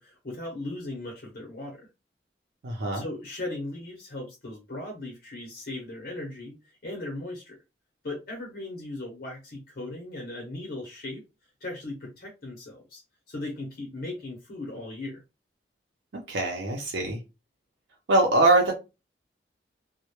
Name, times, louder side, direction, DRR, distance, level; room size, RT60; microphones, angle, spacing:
voice 1, 0.0-1.9 2.9-6.6 6.8-7.6 8.0-11.2 11.6-13.0 13.3-15.2, left 2 dB, 55° left, 0 dB, 0.7 m, -37 dB
voice 2, 2.6-3.0 16.3-17.2 18.1-18.7, right 2 dB, 85° right, 1 dB, 0.6 m, -22 dB
2.1 x 2.1 x 2.9 m, 0.26 s
head